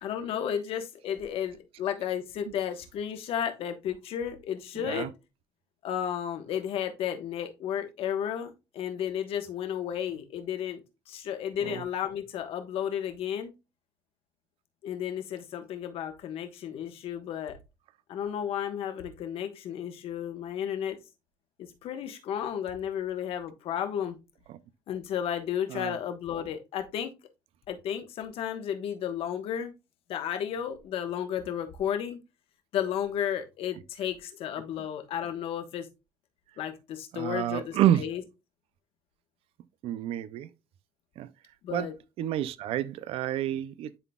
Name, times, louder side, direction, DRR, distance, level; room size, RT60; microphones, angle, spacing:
voice 1, 0.0-5.1 5.8-10.8 11.1-13.5 14.8-17.6 18.1-21.0 21.6-24.2 24.9-27.1 27.7-29.7 30.1-32.2 32.7-35.9 36.6-38.2 41.6-41.9, left 9 dB, 70° left, 1.3 m, -33 dB
voice 2, 4.8-5.1 11.6-11.8 25.7-25.9 37.1-38.0 39.8-40.5 41.2-41.3 41.7-41.9 42.2-44.0, right 12 dB, 70° right, 0.5 m, -29 dB
10.5 x 3.9 x 2.3 m
cardioid pair, 125°, 10 cm